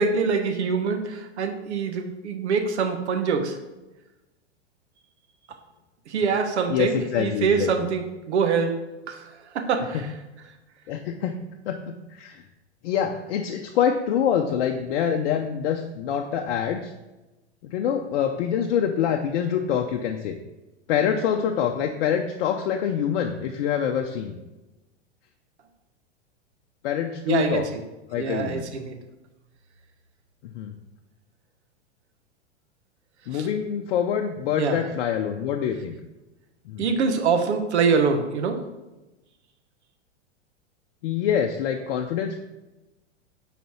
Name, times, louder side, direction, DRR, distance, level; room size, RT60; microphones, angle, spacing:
voice 1, 0.0-3.6 6.1-8.8 9.1-10.1 27.2-27.8 28.1-29.0 33.3-33.5 34.6-34.8 36.8-38.6, right 5 dB, 70° right, 6 dB, 1.2 m, -24 dB
voice 2, 6.7-7.7 10.9-11.4 11.7-12.4 12.8-16.9 17.6-20.4 20.9-24.4 26.8-27.7 28.1-28.7 30.4-30.7 33.3-36.0 36.7-36.8 41.0-42.4, left 8 dB, 55° left, 3 dB, 0.7 m, -25 dB
9.2 x 4.3 x 4.4 m, 1.0 s
hypercardioid pair, 105°, 35 cm